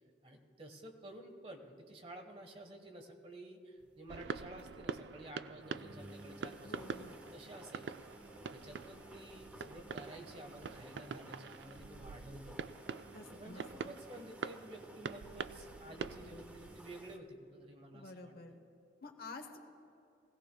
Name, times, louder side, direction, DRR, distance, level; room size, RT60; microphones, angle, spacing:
voice 1, 0.2-6.9 7.3-7.9 8.5-12.6 13.3-18.3, right 1 dB, 35° right, 4 dB, 1.2 m, -52 dB
sound 1, 3.8-4.0 4.2-4.3 4.6-4.7 5.0-5.1 5.6-17.2, equal, 10° right, 0.5 m, -55 dB
sound 2, 4.1-16.8, right 5 dB, 80° right, 0.4 m, -46 dB
voice 2, 6.6-7.2 13.1-14.0 17.9-18.6 19.0-19.6, left 3 dB, 60° left, 5 dB, 1.0 m, -50 dB
20.0 x 16.0 x 2.2 m, 2.7 s
head